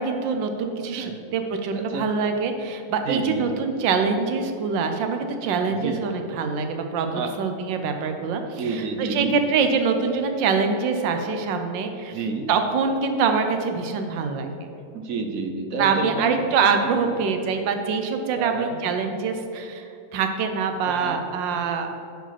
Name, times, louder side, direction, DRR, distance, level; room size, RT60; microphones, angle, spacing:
voice 1, 0.0-12.1 12.5-14.7 15.8-21.9, right 5 dB, 80° right, 6 dB, 1.5 m, -24 dB
voice 2, 1.7-2.0 3.0-3.5 5.7-6.0 7.1-7.3 8.6-9.3 12.1-12.4 14.9-16.6 16.8-17.2 18.4-18.8 20.9-21.2, right 4 dB, 60° right, 4 dB, 1.0 m, -30 dB
11.0 x 5.0 x 5.8 m, 2.6 s
omnidirectional pair, 2.0 m